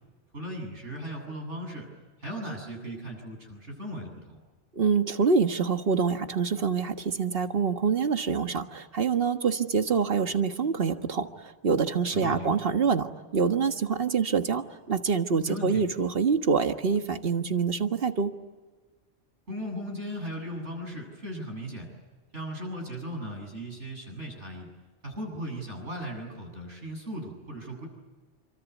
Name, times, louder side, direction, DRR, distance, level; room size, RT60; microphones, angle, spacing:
voice 1, 0.3-1.9 2.2-4.4 12.2-12.5 15.5-15.8 19.5-21.9 22.3-24.7 25.0-27.9, equal, 70° right, 2 dB, 8.5 m, -37 dB
voice 2, 4.7-18.3, right 5 dB, 50° right, 7 dB, 1.7 m, -26 dB
28.0 x 25.0 x 8.4 m, 1.3 s
omnidirectional pair, 1.3 m